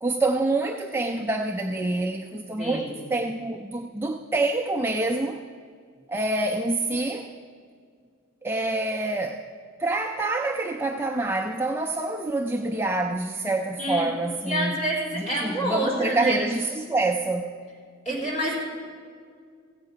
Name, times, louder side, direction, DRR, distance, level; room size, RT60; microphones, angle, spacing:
voice 1, 0.0-5.4 6.1-7.3 8.4-9.4 9.8-14.9 15.1-17.6, right 2 dB, 10° right, 2 dB, 0.4 m, -26 dB
voice 2, 2.6-2.9 13.8-14.1 14.5-16.3 18.1-18.5, right 1 dB, 30° left, -4 dB, 3.8 m, -27 dB
15.5 x 8.2 x 5.7 m, 2.1 s
head